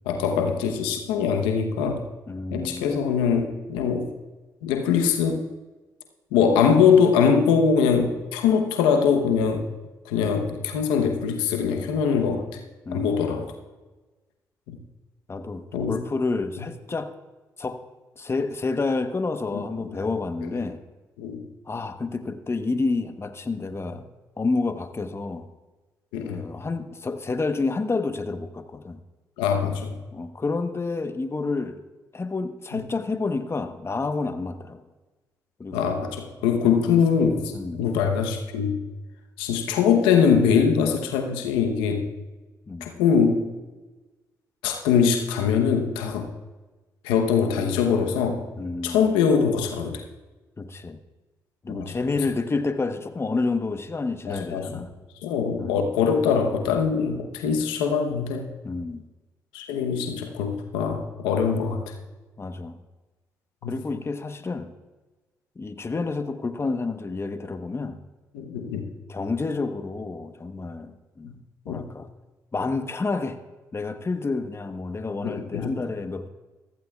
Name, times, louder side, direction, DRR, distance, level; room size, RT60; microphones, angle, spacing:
voice 1, 0.1-2.1 2.5-4.1 4.6-5.4 6.3-9.6 10.0-12.6 12.9-13.5 14.7-14.8 15.7-16.0 19.5-20.0 20.4-20.6 21.2-21.4 26.1-26.4 29.4-29.9 32.7-32.8 35.7-38.8 39.4-42.1 42.8-43.5 44.6-46.3 47.0-48.5 48.8-50.0 51.7-52.0 54.3-54.9 55.2-58.5 59.5-61.9 63.6-63.7 68.3-68.9 71.2-71.3 71.7-71.8 75.2-75.8, left 6 dB, 90° left, 4 dB, 0.9 m, -23 dB
voice 2, 2.3-2.9 12.9-13.1 15.3-17.1 17.6-17.8 18.2-20.8 21.7-24.0 24.4-25.5 26.2-29.0 30.1-31.8 32.1-34.8 35.6-35.9 37.5-37.8 42.7-42.9 48.6-49.1 50.6-51.0 51.6-54.9 55.6-55.7 58.6-59.0 62.4-62.8 63.6-64.7 65.6-68.0 69.1-71.3 71.7-72.1 72.5-73.4 73.7-76.3, left 3 dB, 30° left, 8 dB, 1.1 m, -29 dB
15.0 x 15.0 x 2.4 m, 1.2 s
supercardioid pair, 50°, 8 cm